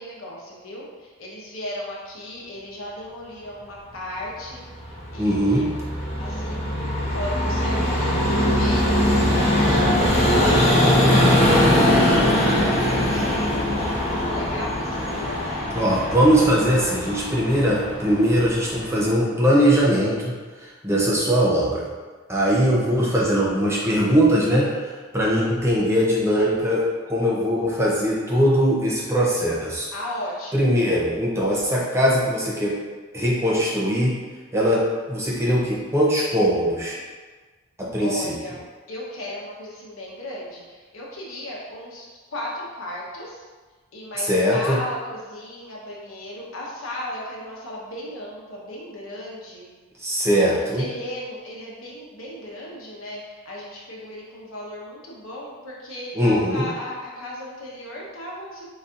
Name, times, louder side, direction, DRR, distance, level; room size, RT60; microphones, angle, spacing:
voice 1, 0.0-5.8 6.2-6.8 7.1-15.6 29.9-30.7 38.0-43.4 43.9-49.7 50.5-58.7, left 1 dB, 75° left, -4 dB, 1.0 m, -36 dB
Vehicle, 4.4-19.1, left 1 dB, 30° left, 0.9 m, -21 dB
voice 2, 5.2-5.7 15.7-20.3 20.8-21.8 22.3-24.7 25.1-29.9 30.5-32.7 33.1-34.2 34.5-34.8 35.1-37.0 37.9-38.3 44.2-44.8 50.0-50.8 56.2-56.7, equal, 10° right, -5 dB, 0.5 m, -20 dB
4.1 x 4.0 x 2.5 m, 1.4 s
head